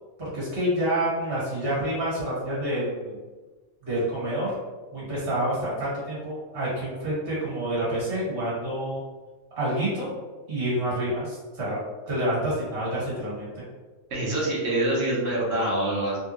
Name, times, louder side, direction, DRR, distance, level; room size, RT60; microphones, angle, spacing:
voice 1, 0.2-3.2 3.8-4.5 4.9-9.0 9.5-10.1 10.5-11.8 12.1-13.6, right 1 dB, 45° right, -7 dB, 1.7 m, -28 dB
voice 2, 14.1-16.2, right 1 dB, 65° right, -4 dB, 1.3 m, -25 dB
3.5 x 2.4 x 2.9 m, 1.3 s
omnidirectional pair, 1.4 m